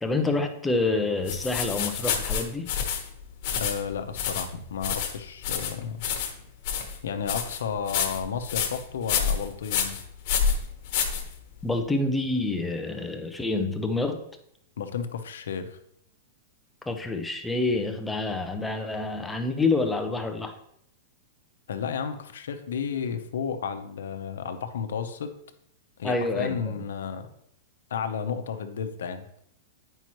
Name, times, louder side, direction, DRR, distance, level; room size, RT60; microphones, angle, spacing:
voice 1, 0.0-2.7 11.6-14.2 16.9-20.5 26.0-26.7, left 3 dB, 5° left, 4 dB, 0.6 m, -27 dB
sound 1, 1.3-11.7, left 7 dB, 45° left, 1.2 m, -29 dB
voice 2, 3.6-6.0 7.0-10.0 14.8-15.8 21.7-25.3 26.0-27.3 27.9-29.3, left 7 dB, 90° left, 8 dB, 0.8 m, -32 dB
9.0 x 5.5 x 3.1 m, 0.73 s
supercardioid pair, 160°, 0 cm